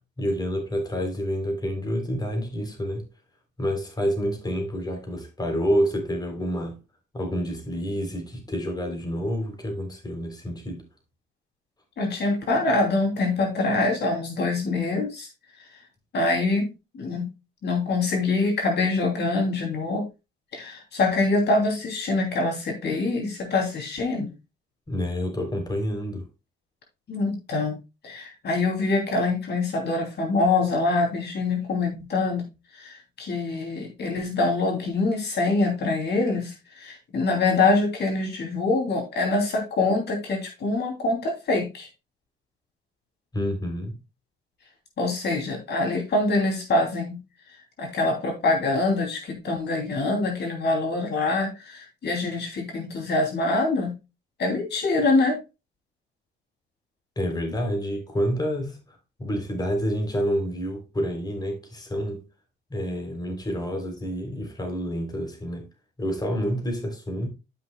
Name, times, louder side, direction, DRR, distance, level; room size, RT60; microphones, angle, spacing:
voice 1, 0.2-3.1 3.6-6.8 7.1-10.8 24.9-26.2 43.3-44.0 57.1-62.2 62.7-65.7 66.0-67.3, equal, 20° left, 3.4 m, -28 dB
voice 2, 12.0-15.3 16.1-17.3 17.6-20.1 20.5-24.3 27.1-27.8 28.0-32.5 32.7-41.9 45.0-47.2 47.8-53.9 54.4-55.4, left 3 dB, 60° left, 2.8 m, -25 dB
12.5 x 6.0 x 2.3 m
cardioid pair, 90°, 20 cm